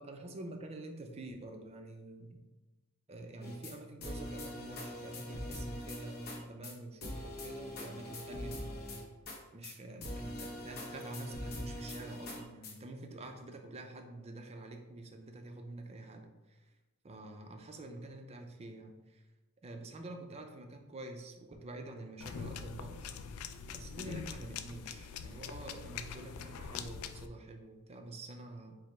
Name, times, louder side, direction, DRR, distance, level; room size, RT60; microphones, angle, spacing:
voice 1, 0.0-2.4 3.1-9.0 9.5-16.6 17.0-19.2 19.6-23.3 23.7-28.7, right 2 dB, 30° right, 4 dB, 0.4 m, -47 dB
sound 1, 3.4-3.7 4.0-6.4 6.6-6.7 7.0-9.4 9.6-9.7 10.0-12.7, left 1 dB, 50° left, 0.8 m, -42 dB
sound 2, 22.2-27.3, left 6 dB, 75° left, 0.3 m, -43 dB
4.9 x 2.0 x 4.2 m, 1.1 s
head